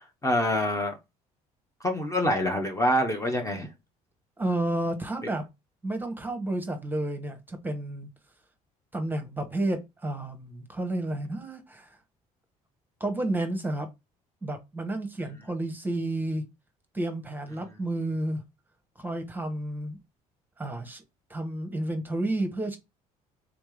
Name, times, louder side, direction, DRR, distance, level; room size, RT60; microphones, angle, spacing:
voice 1, 0.2-0.9 1.8-3.7, left 1 dB, 15° left, 0.9 m, -25 dB
voice 2, 4.4-5.4 5.8-8.1 8.9-12.0 13.0-13.9 14.4-16.4 16.9-18.4 19.0-20.0 20.6-21.0 21.3-22.8, right 1 dB, 10° right, 1.1 m, -31 dB
3.8 x 3.4 x 3.3 m
hypercardioid pair, 55°, 19 cm